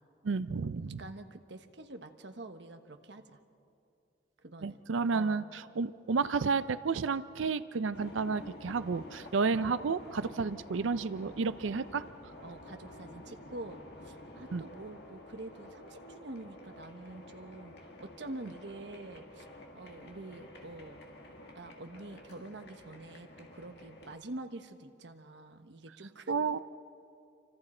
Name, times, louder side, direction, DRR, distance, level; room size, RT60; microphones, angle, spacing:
voice 1, 0.2-1.0 4.6-12.0 14.5-14.6 26.3-26.6, right 4 dB, 80° right, 14 dB, 0.5 m, -31 dB
voice 2, 0.8-3.4 4.4-4.8 5.1-5.4 10.4-10.6 12.4-19.5 19.7-21.0 21.5-26.6, right 2 dB, 60° right, 7 dB, 1.2 m, -46 dB
sound 1, 7.9-24.2, left 1 dB, 55° left, 1.9 m, -50 dB
29.0 x 25.0 x 4.4 m, 2.6 s
head